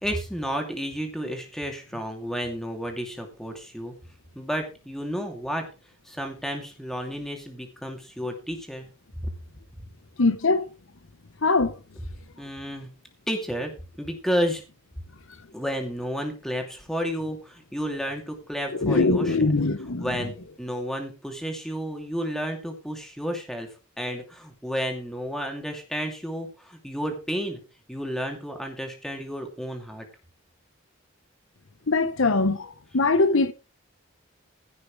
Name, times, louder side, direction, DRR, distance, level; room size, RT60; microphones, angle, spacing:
voice 1, 0.0-3.9 4.3-5.7 6.1-8.9 12.4-12.9 13.3-13.7 14.0-14.6 15.5-19.5 20.0-23.7 24.0-27.6 27.9-30.0, equal, ahead, 2.6 m, -31 dB
voice 2, 10.2-10.6 11.4-11.7 18.8-20.1 31.9-33.5, left 3 dB, 70° left, 0.9 m, -22 dB
16.0 x 6.5 x 4.8 m
head